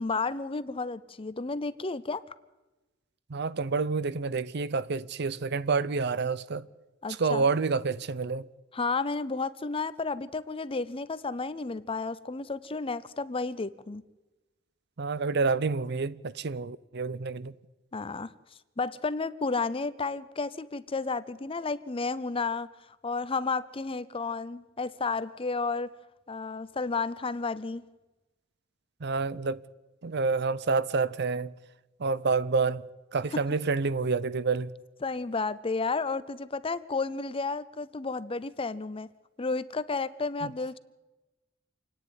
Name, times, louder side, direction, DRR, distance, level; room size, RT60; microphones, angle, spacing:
voice 1, 0.0-2.2 7.0-7.4 8.7-14.0 17.9-18.3 18.8-22.7 23.0-25.9 26.3-27.8 35.0-39.1 39.4-40.8, left 4 dB, 30° left, 0.6 m, -32 dB
voice 2, 3.3-6.7 7.1-8.5 15.0-17.5 29.0-29.6 30.0-31.5 32.0-32.9 33.1-34.7 40.4-40.5, right 4 dB, 60° right, 0.7 m, -28 dB
28.0 x 9.8 x 9.7 m
head